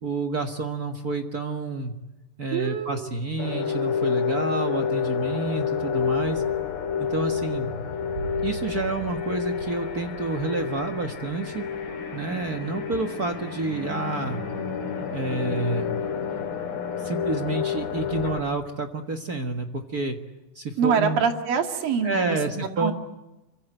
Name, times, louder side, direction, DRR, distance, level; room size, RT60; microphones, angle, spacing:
voice 1, 0.0-1.9 2.4-6.4 7.0-7.7 8.4-11.6 12.1-14.4 15.1-16.0 17.0-20.2 20.5-21.2 22.0-22.9, right 3 dB, 45° right, 5 dB, 1.2 m, -29 dB
voice 2, 2.5-3.1 20.8-22.9, right 6 dB, 80° right, 5 dB, 4.1 m, -25 dB
sound 1, 3.4-18.4, left 7 dB, 75° left, 5.1 m, -29 dB
sound 2, 8.1-12.4 12.6-12.7, right 6 dB, 60° right, 2.3 m, -40 dB
26.0 x 24.5 x 8.9 m, 1.0 s
omnidirectional pair, 4.0 m